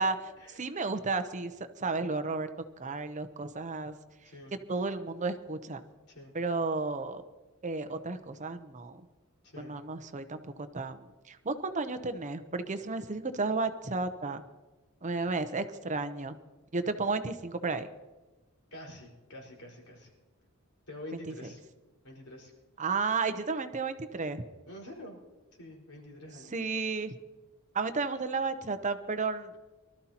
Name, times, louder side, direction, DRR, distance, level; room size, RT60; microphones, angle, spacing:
voice 1, 0.0-2.5 2.8-3.9 4.7-5.8 6.3-7.2 7.6-9.0 9.6-14.4 15.0-16.4 16.7-17.9 21.3-21.5 22.8-24.4 26.5-27.1 27.7-29.5, right 3 dB, 35° right, 9 dB, 0.8 m, -33 dB
voice 2, 9.4-9.8 18.7-20.1 20.9-21.6 22.0-22.5 24.7-25.2 25.6-26.7, left 1 dB, 75° left, -1 dB, 4.8 m, -47 dB
24.0 x 13.0 x 2.9 m, 1.2 s
head